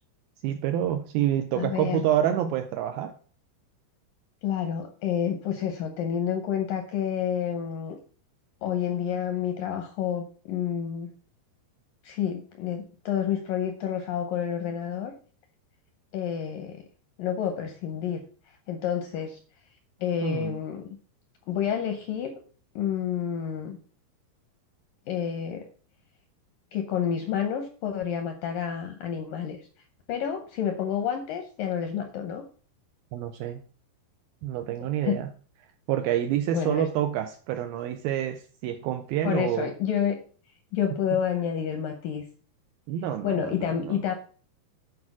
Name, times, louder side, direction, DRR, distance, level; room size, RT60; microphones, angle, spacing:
voice 1, 0.4-3.1 20.2-20.6 33.1-33.6 34.4-35.3 35.9-39.7 42.9-44.0, right 11 dB, 80° right, 7 dB, 2.2 m, -28 dB
voice 2, 1.6-2.0 4.4-8.0 8.6-11.1 12.0-15.1 16.1-16.8 17.2-18.2 18.7-19.4 20.0-20.9 21.5-22.3 22.8-23.8 25.1-25.7 26.7-29.6 30.1-32.4 34.8-35.2 36.5-36.9 39.2-40.2 40.7-42.2 43.2-44.1, left 8 dB, 75° left, 5 dB, 2.0 m, -29 dB
8.6 x 4.8 x 6.0 m, 0.42 s
omnidirectional pair, 4.8 m